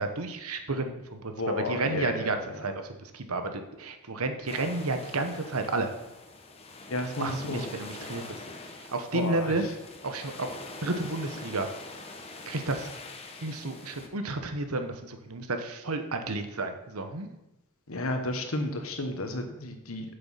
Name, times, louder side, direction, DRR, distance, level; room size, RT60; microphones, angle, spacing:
voice 1, 0.0-5.9 7.2-8.4 8.9-9.6 10.0-10.5 10.8-11.7 12.5-12.9 13.4-17.3, right 2 dB, 85° right, 7 dB, 1.2 m, -31 dB
voice 2, 1.4-2.7 6.9-7.6 9.1-9.7 17.9-20.1, left 1 dB, 70° left, 6 dB, 1.3 m, -32 dB
sound 1, 4.5-14.1, left 2 dB, 30° left, 1.0 m, -44 dB
7.9 x 7.0 x 5.7 m, 0.92 s
head